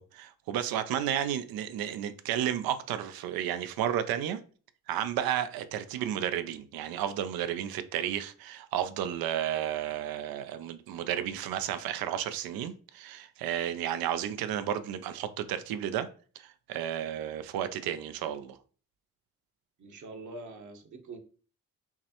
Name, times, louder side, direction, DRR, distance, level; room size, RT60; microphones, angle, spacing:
voice 1, 0.0-4.4 4.9-16.1 16.4-18.6, right 10 dB, 90° right, 0.5 m, -32 dB
voice 2, 19.8-21.2, right 3 dB, 55° right, 0.9 m, -44 dB
5.8 x 2.1 x 2.9 m
cardioid pair, 70°, 35 cm